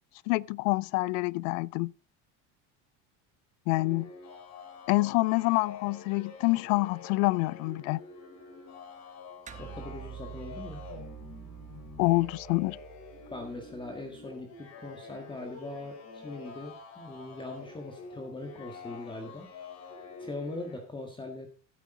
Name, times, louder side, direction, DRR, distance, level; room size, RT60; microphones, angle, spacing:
voice 1, 0.3-1.9 3.7-4.1 4.9-8.0 12.0-12.8, left 23 dB, 85° left, 0.5 m, -27 dB
sound 1, 3.7-20.8, left 4 dB, 45° left, 3.9 m, -47 dB
voice 2, 9.5-10.8 13.3-19.5 20.2-21.5, left 2 dB, 15° left, 1.7 m, -41 dB
sound 2, 9.5-14.2, right 10 dB, 20° right, 1.1 m, -47 dB
14.5 x 8.5 x 3.8 m
cardioid pair, 140°, 38 cm